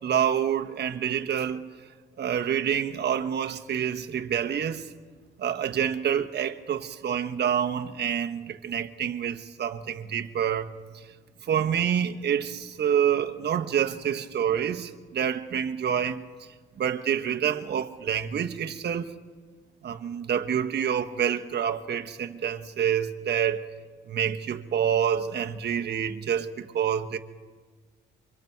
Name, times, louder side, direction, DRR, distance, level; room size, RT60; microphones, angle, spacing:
voice 1, 0.0-1.7 2.2-4.9 5.4-10.7 11.4-16.2 16.8-19.1 19.8-23.6 24.1-27.2, right 8 dB, 55° right, 1.2 m, -27 dB
27.0 x 24.5 x 4.6 m
cardioid pair, 90°, 20 cm